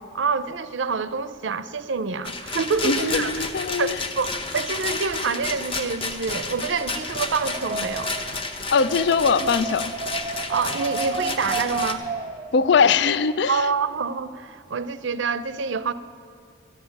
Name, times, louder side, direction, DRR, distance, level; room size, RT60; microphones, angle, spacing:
voice 1, 0.0-3.3 3.8-8.1 10.5-12.0 13.5-15.9, right 5 dB, 70° right, 0.5 m, -27 dB
Rattle, 2.2-11.9, left 3 dB, 25° left, 0.8 m, -31 dB
voice 2, 2.8-4.0 8.7-9.9 12.5-13.7, left 5 dB, 60° left, 0.4 m, -21 dB
Wind, 7.1-13.1, right 4 dB, 20° right, 0.7 m, -32 dB
13.0 x 7.3 x 9.4 m
head